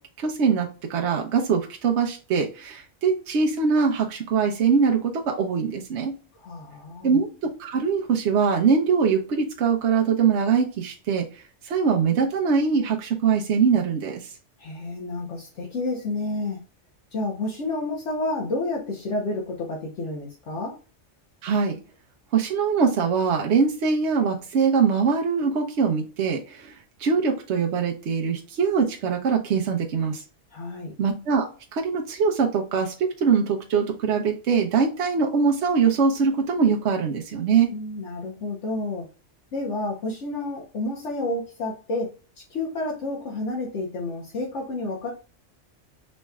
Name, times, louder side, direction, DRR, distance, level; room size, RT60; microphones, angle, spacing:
voice 1, 0.2-6.1 7.0-11.2 11.6-14.3 21.4-21.8 22.3-30.2 31.0-37.7, right 6 dB, 70° right, 2 dB, 1.0 m, -23 dB
voice 2, 6.3-7.1 14.6-16.6 17.1-20.7 30.5-30.9 37.7-39.1 39.5-45.1, left 2 dB, 75° left, -1 dB, 1.2 m, -30 dB
5.3 x 3.1 x 2.2 m, 0.36 s
omnidirectional pair, 1.2 m